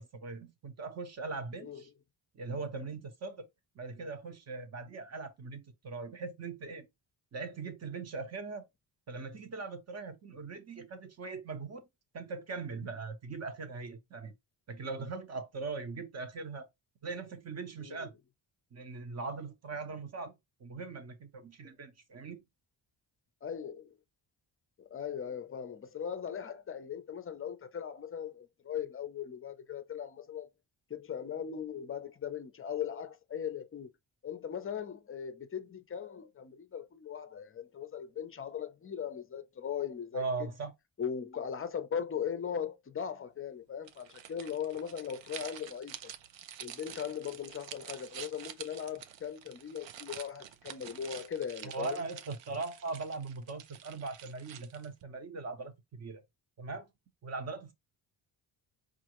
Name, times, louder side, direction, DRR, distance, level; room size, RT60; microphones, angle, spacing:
voice 1, 0.0-1.9 2.3-3.5 3.8-6.9 7.3-8.7 9.1-11.8 12.1-14.3 14.7-16.7 17.0-18.1 18.7-20.3 20.6-22.4 40.1-40.7 51.6-56.2 56.6-56.9 57.2-57.7, right 4 dB, 35° right, 0.8 m, -40 dB
voice 2, 23.4-23.9 24.8-30.5 30.9-33.9 34.2-40.5 41.0-46.1 46.6-52.0, left 8 dB, 30° left, 0.5 m, -39 dB
sound 1, 43.8-55.0, right 10 dB, 75° right, 0.6 m, -48 dB
5.3 x 2.5 x 2.9 m
wide cardioid pair, 165°, 44 cm